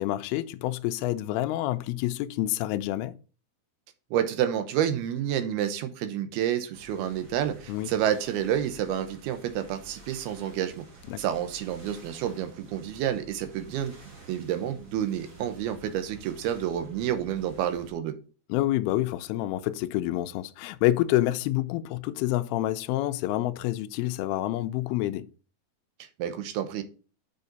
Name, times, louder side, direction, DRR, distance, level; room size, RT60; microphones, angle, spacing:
voice 1, 0.0-3.2 7.7-7.9 11.1-11.3 18.5-25.3, left 15 dB, 80° left, 2.4 m, -28 dB
voice 2, 4.1-10.8 11.2-13.9 14.3-18.2 26.0-26.8, right 10 dB, 75° right, 2.8 m, -29 dB
sound 1, 6.7-17.9, right 2 dB, 45° right, 1.4 m, -50 dB
7.2 x 6.6 x 4.0 m
omnidirectional pair, 4.6 m